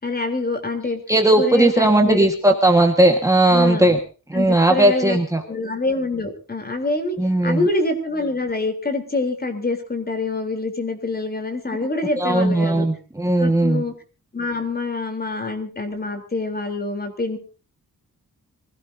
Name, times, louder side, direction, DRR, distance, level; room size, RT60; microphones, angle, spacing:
voice 1, 0.0-1.0 1.4-2.6 3.5-4.0 4.3-5.2 5.4-7.2 7.4-12.9 13.4-13.9 14.3-17.4, left 2 dB, 25° left, 5 dB, 3.6 m, -26 dB
voice 2, 1.1-4.0 4.3-5.4 7.2-7.7 12.2-13.8, right 1 dB, 10° right, 2 dB, 1.6 m, -17 dB
24.5 x 17.0 x 2.8 m, 0.36 s
wide cardioid pair, 140°, 34 cm